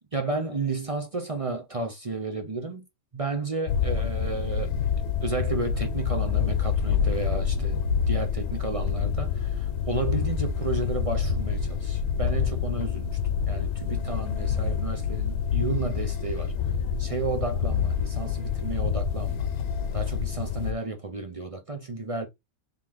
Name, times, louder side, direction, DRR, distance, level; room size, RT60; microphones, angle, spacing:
voice 1, 0.1-2.8 3.1-4.7 5.2-7.8 8.1-13.2 13.5-16.5 17.0-19.5 19.9-22.3, right 3 dB, 35° right, 0.5 m, -32 dB
sound 1, 3.7-20.7, left 7 dB, 75° left, 1.1 m, -27 dB
3.7 x 3.5 x 3.0 m
omnidirectional pair, 1.5 m